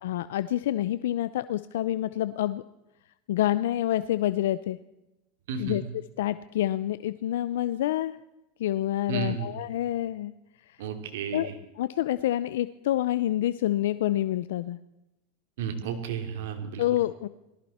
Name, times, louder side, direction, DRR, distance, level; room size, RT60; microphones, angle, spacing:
voice 1, 0.0-2.6 3.3-4.8 5.6-5.8 6.2-8.2 8.6-10.3 10.7-10.8 11.3-11.5 11.8-14.8 16.8-17.3, left 13 dB, 80° left, 14 dB, 0.5 m, -27 dB
voice 2, 5.5-5.9 9.1-9.5 10.8-11.6 15.6-16.8, right 7 dB, 75° right, 6 dB, 2.7 m, -33 dB
18.5 x 14.5 x 4.3 m, 0.96 s
supercardioid pair, 135°, 0 cm